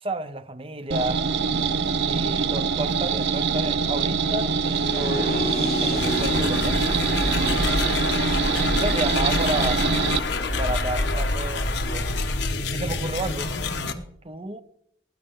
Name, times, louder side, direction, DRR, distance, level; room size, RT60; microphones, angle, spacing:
voice 1, 0.0-1.2 2.0-6.8 7.2-8.0 8.7-9.9 10.6-12.2 12.7-13.5 14.2-14.6, right 2 dB, 30° right, 0.7 m, -32 dB
sound 1, 0.9-10.2, right 5 dB, 65° right, 0.5 m, -24 dB
sound 2, 4.6-10.6, left 2 dB, 55° left, 1.0 m, -33 dB
sound 3, 5.9-13.9, left 2 dB, 80° left, 1.2 m, -26 dB
19.0 x 10.0 x 3.7 m
head